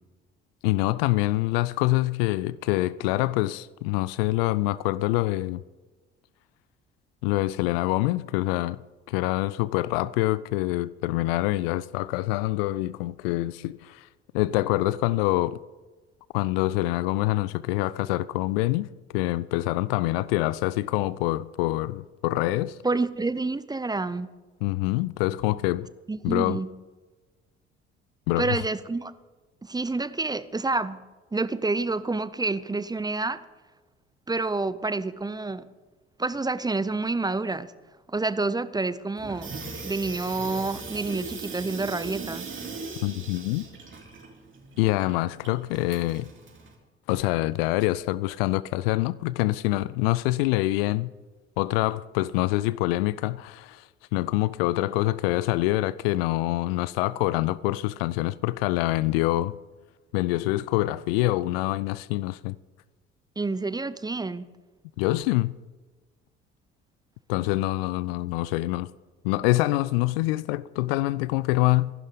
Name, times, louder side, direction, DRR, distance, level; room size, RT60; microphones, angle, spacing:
voice 1, 0.6-5.6 7.2-8.8 9.1-14.0 14.3-15.6 16.3-18.9 19.1-22.7 24.6-25.9 26.2-26.6 28.3-28.6 43.0-43.6 44.8-46.3 47.1-51.1 51.6-53.8 54.1-59.5 60.1-62.6 65.0-65.6 67.3-68.9 69.2-71.9, left 18 dB, 60° left, 0.5 m, -25 dB
voice 2, 22.8-24.3 26.1-26.7 28.4-29.1 29.6-31.0 31.3-33.4 34.3-35.7 36.2-37.7 38.1-39.6 39.8-42.5 63.4-64.5, right 3 dB, 10° right, 0.8 m, -28 dB
Water tap faucet / Sink (filling or washing), 39.2-46.7, right 4 dB, 35° right, 3.7 m, -39 dB
25.0 x 11.5 x 3.9 m
figure-of-eight pair, 50°, 33 cm